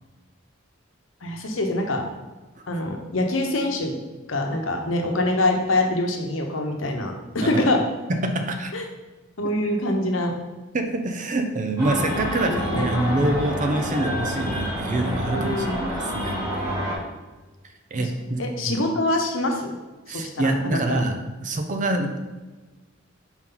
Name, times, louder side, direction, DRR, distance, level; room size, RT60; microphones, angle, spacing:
voice 1, 1.2-2.0 2.7-4.0 4.3-7.8 8.7-8.8 9.4-10.3 12.4-12.9 15.3-15.8 18.4-19.8 20.1-21.0, left 1 dB, 75° left, 3 dB, 0.9 m, -25 dB
voice 2, 8.1-8.7 10.7-16.4 17.9-18.8 20.1-22.2, right 2 dB, 40° right, 6 dB, 0.6 m, -25 dB
sound 1, 11.8-16.9, equal, 20° right, 1.6 m, -28 dB
5.6 x 4.5 x 3.9 m, 1.2 s
head